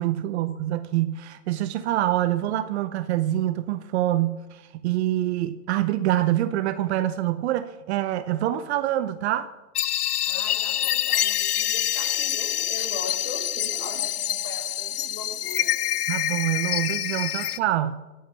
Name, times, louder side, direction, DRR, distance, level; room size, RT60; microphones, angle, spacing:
voice 1, 0.0-9.5 16.1-18.0, right 13 dB, 45° right, 12 dB, 0.9 m, -25 dB
sound 1, 9.7-17.6, left 12 dB, 75° left, 0.8 m, -26 dB
voice 2, 10.2-15.7, left 3 dB, 25° left, 1 dB, 6.3 m, -39 dB
22.0 x 8.9 x 7.1 m, 1.1 s
hypercardioid pair, 120°, 46 cm